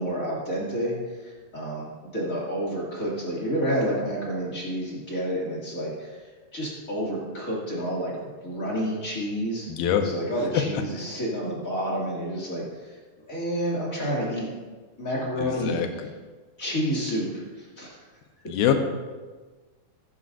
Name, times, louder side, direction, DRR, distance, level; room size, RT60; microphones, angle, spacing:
voice 1, 0.0-6.1 6.5-9.7 10.0-12.9 13.3-14.5 15.0-15.9 16.6-18.0, equal, 25° left, -5 dB, 2.5 m, -29 dB
voice 2, 9.7-10.1 10.5-10.6 15.4-16.1 18.5-18.7, left 10 dB, 80° left, 5 dB, 2.8 m, -24 dB
15.0 x 13.5 x 2.7 m, 1.4 s
omnidirectional pair, 4.3 m